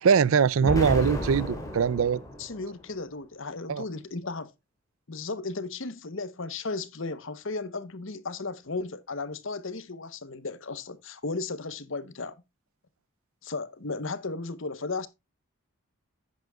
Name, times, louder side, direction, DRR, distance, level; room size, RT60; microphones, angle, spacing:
voice 1, 0.0-2.2 3.7-3.8, right 6 dB, 70° right, 0.4 m, -22 dB
Explosion, 0.6-2.8, equal, 15° left, 3.0 m, -32 dB
voice 2, 2.4-4.5 5.1-12.4 13.4-15.1, left 3 dB, 60° left, 0.9 m, -35 dB
10.5 x 9.3 x 2.3 m
head